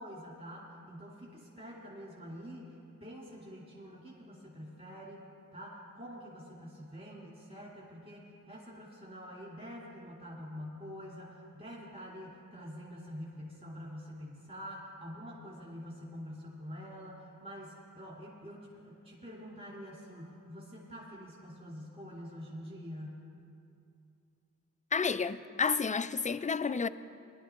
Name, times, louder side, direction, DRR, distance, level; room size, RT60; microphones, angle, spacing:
voice 1, 0.0-5.2 5.5-23.2, equal, 30° right, 2.7 m, -46 dB
voice 2, 24.9-26.9, left 5 dB, 25° left, 0.4 m, -30 dB
19.5 x 11.0 x 3.6 m
wide cardioid pair, 45°, 32 cm